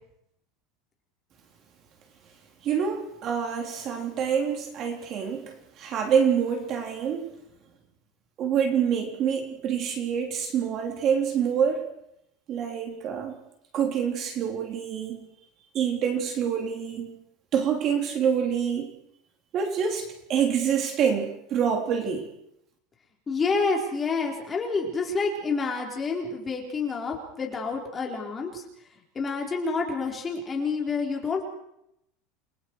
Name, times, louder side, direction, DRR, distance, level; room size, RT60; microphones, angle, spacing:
voice 1, 2.6-7.3 8.4-11.9 12.5-13.4 13.7-15.2 15.7-17.1 17.5-18.9 19.5-22.3, right 7 dB, 30° right, 3 dB, 3.5 m, -26 dB
voice 2, 23.3-28.6 29.1-31.4, left 4 dB, 15° left, 0 dB, 4.4 m, -28 dB
30.0 x 23.5 x 4.8 m, 0.77 s
supercardioid pair, 175°, 0 cm